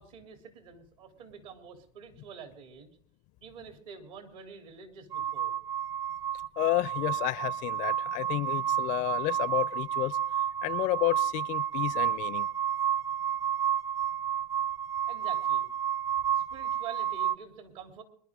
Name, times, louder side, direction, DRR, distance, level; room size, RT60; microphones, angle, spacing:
voice 1, 0.0-3.0 3.4-5.5 15.1-15.7 16.3-18.0, right 7 dB, 70° right, 3.3 m, -47 dB
sound 1, 5.1-17.4, right 10 dB, 40° right, 0.8 m, -31 dB
voice 2, 6.6-10.2 10.6-12.5, left 18 dB, 50° left, 0.5 m, -31 dB
25.0 x 11.0 x 3.7 m
hypercardioid pair, 95°, 17 cm